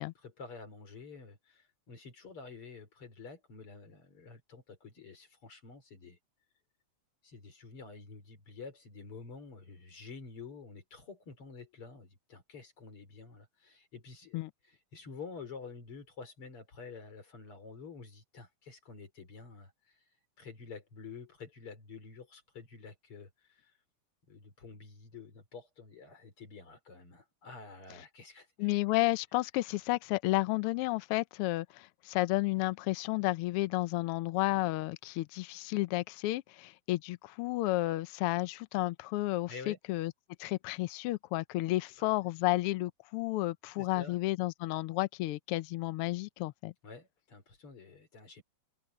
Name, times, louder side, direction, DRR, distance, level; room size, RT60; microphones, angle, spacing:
voice 1, 0.0-6.2 7.2-20.0 20.4-23.7 24.3-28.7 39.5-39.8 42.0-42.3 43.8-44.2 46.8-48.4, left 4 dB, 50° left, 4.9 m, -49 dB
voice 2, 28.6-40.1 40.4-46.7, left 18 dB, 85° left, 1.2 m, -32 dB
omnidirectional pair, 3.3 m